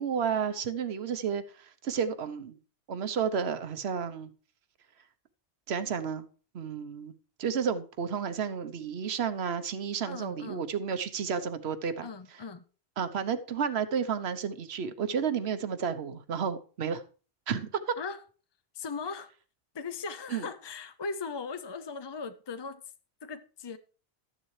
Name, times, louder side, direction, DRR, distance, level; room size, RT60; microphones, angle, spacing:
voice 1, 0.0-2.6 2.9-4.3 5.7-6.3 6.5-7.1 7.4-12.1 13.0-17.0 17.5-17.9 20.3-20.5, right 7 dB, 75° right, 1.1 m, -31 dB
voice 2, 10.1-10.6 12.0-12.6 18.0-18.2 18.7-19.3 19.7-22.8 23.2-23.8, left 4 dB, 35° left, 0.4 m, -38 dB
13.5 x 10.5 x 3.2 m
omnidirectional pair, 1.1 m